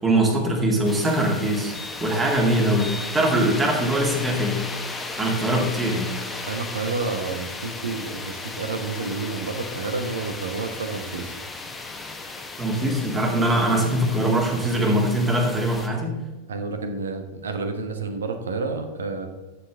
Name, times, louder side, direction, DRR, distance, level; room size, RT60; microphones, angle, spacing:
voice 1, 0.0-1.7 2.0-4.6 5.2-6.1 12.6-16.2, right 1 dB, 15° right, 1 dB, 2.2 m, -22 dB
sound 1, 0.8-15.9, left 3 dB, 10° left, 1.2 m, -35 dB
voice 2, 6.5-11.4 16.5-19.3, right 3 dB, 65° right, 7 dB, 1.2 m, -30 dB
11.5 x 7.1 x 3.6 m, 1.2 s
figure-of-eight pair, 90°, 0 cm